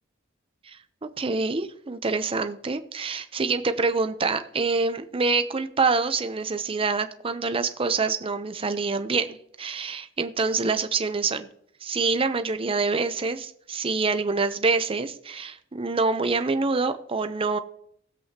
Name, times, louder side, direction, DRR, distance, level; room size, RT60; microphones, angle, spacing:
voice 1, 1.0-11.5 11.8-17.6, right 4 dB, 30° right, 9 dB, 0.6 m, -26 dB
18.5 x 7.7 x 2.9 m, 0.68 s
head